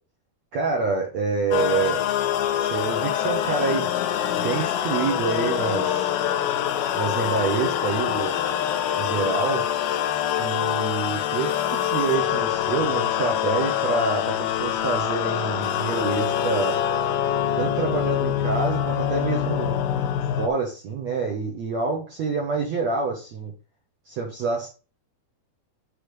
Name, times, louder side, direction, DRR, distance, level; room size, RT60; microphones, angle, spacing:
voice 1, 0.5-2.1 2.6-3.9 4.3-6.3 6.9-8.4 9.0-9.7 10.4-16.8 17.6-19.8 20.4-23.5 24.1-24.7, right 4 dB, 60° right, -1 dB, 1.9 m, -27 dB
sound 1, 1.5-20.5, left 10 dB, 80° left, 2.5 m, -25 dB
10.0 x 4.3 x 3.3 m, 0.33 s
omnidirectional pair, 4.7 m